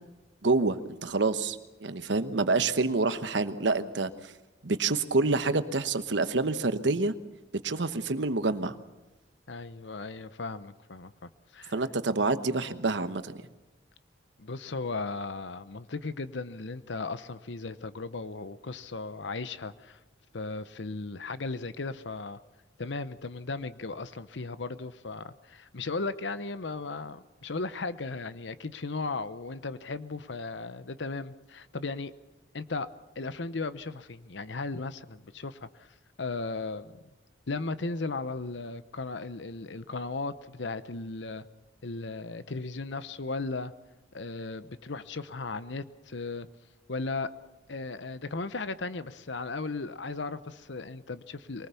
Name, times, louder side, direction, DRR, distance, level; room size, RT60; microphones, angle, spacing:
voice 1, 0.4-4.1 4.6-7.1 7.6-8.7 11.7-13.4, right 3 dB, 75° right, 11 dB, 1.0 m, -27 dB
voice 2, 9.5-11.8 14.4-20.0 20.3-22.4 22.8-32.1 32.5-32.9 33.2-35.9 36.2-36.9 37.5-41.4 41.8-43.7 44.1-46.5 46.9-47.3 47.7-51.7, left 3 dB, 75° left, 14 dB, 0.9 m, -36 dB
23.0 x 19.5 x 6.9 m, 1.1 s
head